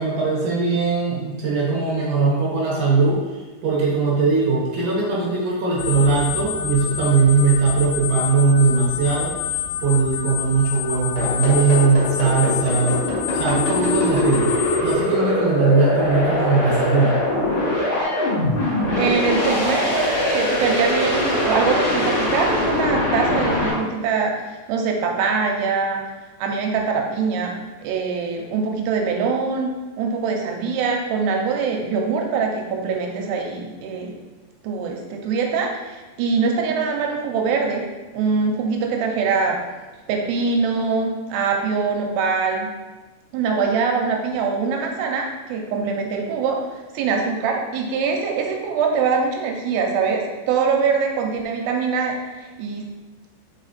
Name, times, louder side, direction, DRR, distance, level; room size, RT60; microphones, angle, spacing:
voice 1, 0.0-3.2 3.6-9.3 9.8-13.0 13.3-14.5 14.8-17.2, right 4 dB, 70° right, -5 dB, 2.0 m, -19 dB
sound 1, 5.8-15.0, left 8 dB, 80° left, 2.4 m, -28 dB
kick mega warp, 11.2-23.7, left 1 dB, 40° left, 2.1 m, -22 dB
voice 2, 19.0-26.0 26.4-27.5 27.8-29.7 30.0-34.2 34.6-37.8 38.1-39.6 40.1-42.7 43.3-46.6 46.9-52.9, right 5 dB, 85° right, 1 dB, 2.7 m, -23 dB
5.1 x 5.0 x 4.1 m, 1.2 s
omnidirectional pair, 4.9 m